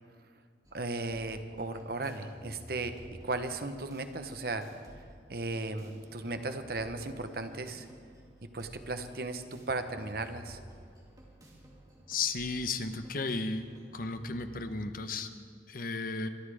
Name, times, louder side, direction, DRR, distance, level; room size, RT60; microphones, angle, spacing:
sound 1, 0.6-14.7, equal, 20° right, 2.3 m, -54 dB
voice 1, 0.7-4.7 5.3-7.9 8.5-10.6, right 2 dB, 55° right, 8 dB, 1.0 m, -36 dB
voice 2, 12.1-13.6 13.9-15.3 15.7-16.3, left 3 dB, 50° left, 9 dB, 0.9 m, -34 dB
25.0 x 11.0 x 4.9 m, 2.1 s
head